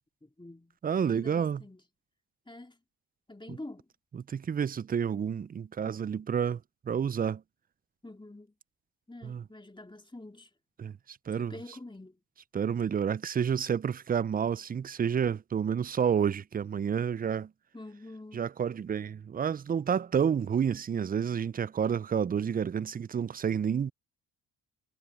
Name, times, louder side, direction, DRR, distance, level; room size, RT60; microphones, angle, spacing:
voice 1, 0.2-1.8 2.5-2.8 3.3-3.9 8.0-8.5 9.1-10.5 11.4-12.2 17.7-18.4, left 2 dB, 10° left, 2.3 m, -47 dB
voice 2, 0.8-1.6 3.5-3.6 4.1-7.4 9.2-9.4 10.8-11.5 12.5-17.5 18.3-23.9, right 7 dB, 25° right, 0.4 m, -30 dB
supercardioid pair, 55°, 41 cm